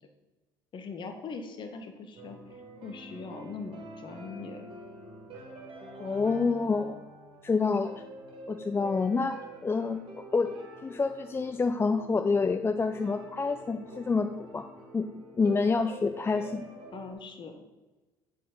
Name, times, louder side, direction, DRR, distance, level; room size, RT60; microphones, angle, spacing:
voice 1, 0.7-4.6 16.9-17.6, left 4 dB, 45° left, 6 dB, 1.1 m, -41 dB
sound 1, 2.1-17.1, right 2 dB, 50° right, 2.1 m, -47 dB
voice 2, 6.0-7.0 7.4-7.9 8.5-9.4 9.6-10.5 10.8-14.6 14.9-15.1 15.3-16.7, left 4 dB, 20° left, 8 dB, 0.4 m, -27 dB
7.4 x 4.6 x 5.0 m, 1.2 s
hypercardioid pair, 60°, 11 cm